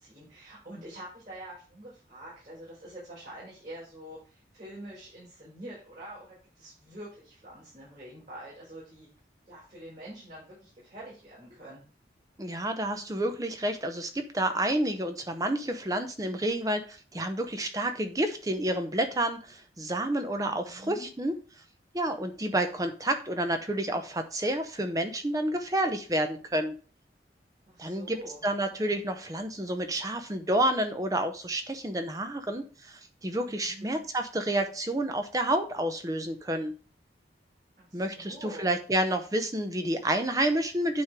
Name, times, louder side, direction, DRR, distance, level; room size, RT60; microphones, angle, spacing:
voice 1, 0.0-9.1 9.5-11.8 20.4-21.1 27.7-28.4 33.4-34.0 37.8-38.7, right 1 dB, 45° right, -7 dB, 4.3 m, -46 dB
voice 2, 12.4-21.4 21.9-26.7 27.8-28.2 28.4-36.7 37.9-41.0, right 1 dB, 20° right, 7 dB, 0.7 m, -29 dB
9.4 x 3.7 x 4.7 m, 0.37 s
head